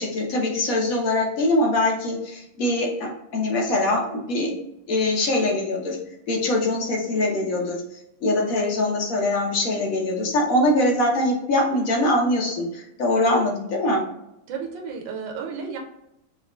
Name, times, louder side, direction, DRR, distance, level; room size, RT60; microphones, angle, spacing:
voice 1, 0.0-4.5 4.9-6.0 6.3-7.8 8.2-14.0, left 1 dB, 55° left, -1 dB, 1.1 m, -23 dB
voice 2, 14.5-15.8, right 6 dB, 70° right, 1 dB, 1.3 m, -32 dB
4.8 x 2.3 x 3.0 m, 0.84 s
omnidirectional pair, 2.3 m